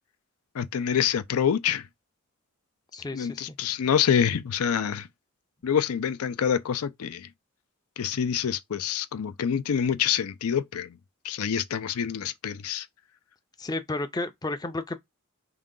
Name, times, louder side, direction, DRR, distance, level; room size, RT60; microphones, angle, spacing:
voice 1, 0.5-1.9 3.1-5.1 5.6-7.3 8.0-11.0 11.2-12.9, left 8 dB, 85° left, 0.4 m, -26 dB
voice 2, 2.9-3.5 13.6-15.0, left 2 dB, 20° left, 0.4 m, -32 dB
3.7 x 2.2 x 3.7 m
head